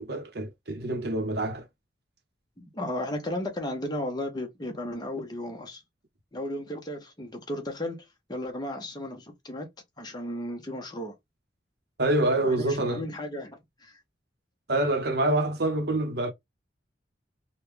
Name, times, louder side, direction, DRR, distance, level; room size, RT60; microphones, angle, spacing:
voice 1, 0.0-1.7 12.0-13.1 14.7-16.3, right 1 dB, 55° right, 0.8 m, -26 dB
voice 2, 2.6-5.8 6.3-9.7 10.0-11.1 12.4-14.0, left 1 dB, 20° left, 0.9 m, -35 dB
3.6 x 2.3 x 3.2 m
head